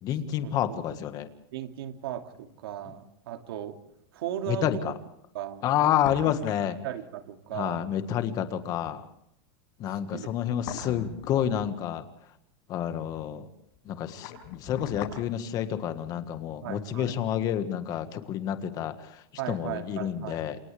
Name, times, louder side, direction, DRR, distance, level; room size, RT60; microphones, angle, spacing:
voice 1, 0.0-1.3 4.5-4.9 5.6-6.8 7.5-9.0 9.8-12.0 12.7-13.5 13.8-20.6, left 10 dB, 30° left, 9 dB, 1.7 m, -29 dB
voice 2, 1.5-3.8 4.1-4.9 5.3-5.7 6.6-8.0 9.9-10.3 10.7-10.9 16.6-17.2 19.4-20.4, right 11 dB, 75° right, 6 dB, 2.6 m, -37 dB
sound 1, 2.5-2.6 5.6-6.7 7.0-7.1 10.2-12.0 13.7-15.2 15.5-15.6, left 8 dB, 45° left, 5.8 m, -40 dB
28.5 x 28.5 x 3.5 m, 0.75 s
supercardioid pair, 165°, 13 cm